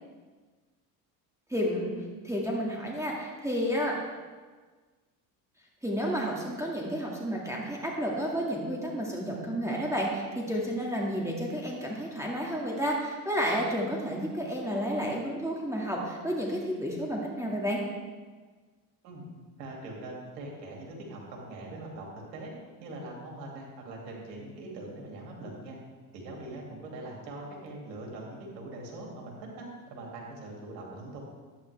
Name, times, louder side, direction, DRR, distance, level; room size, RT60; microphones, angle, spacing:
voice 1, 1.5-3.9 5.8-17.8, equal, 5° right, -3 dB, 2.0 m, -31 dB
voice 2, 19.6-22.5 22.8-25.8 26.1-31.2, right 2 dB, 90° right, -1 dB, 2.6 m, -42 dB
11.5 x 9.1 x 3.4 m, 1.4 s
supercardioid pair, 80°, 49 cm